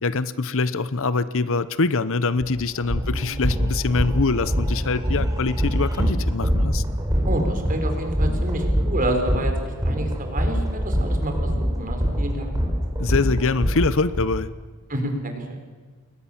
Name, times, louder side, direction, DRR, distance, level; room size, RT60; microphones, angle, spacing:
voice 1, 0.0-6.8 13.0-14.5, left 3 dB, 65° left, 15 dB, 0.9 m, -24 dB
sound 1, 2.4-2.5 2.8-14.2, equal, 15° right, 4.5 m, -24 dB
voice 2, 7.2-9.5 9.8-12.6 14.9-15.6, right 1 dB, 40° right, 4 dB, 5.0 m, -29 dB
29.5 x 21.5 x 7.4 m, 1.4 s
head